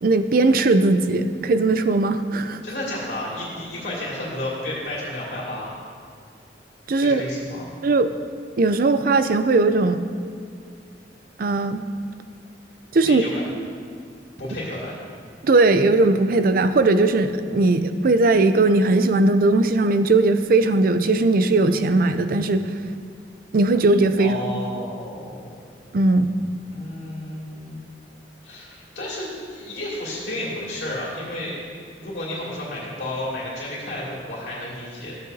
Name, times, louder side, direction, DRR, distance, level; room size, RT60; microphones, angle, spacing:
voice 1, 0.0-2.6 6.9-7.3 7.8-8.1 8.6-10.0 11.4-11.8 12.9-13.2 15.4-22.7 23.5-24.4 25.9-26.3, right 2 dB, 55° right, 10 dB, 0.5 m, -18 dB
voice 2, 2.6-5.8 6.9-7.8 13.0-13.4 14.4-15.0 24.2-25.4 26.7-27.8 28.4-31.5 32.0-35.2, left 1 dB, 75° left, -6 dB, 2.6 m, -32 dB
13.5 x 8.1 x 2.7 m, 2.2 s
head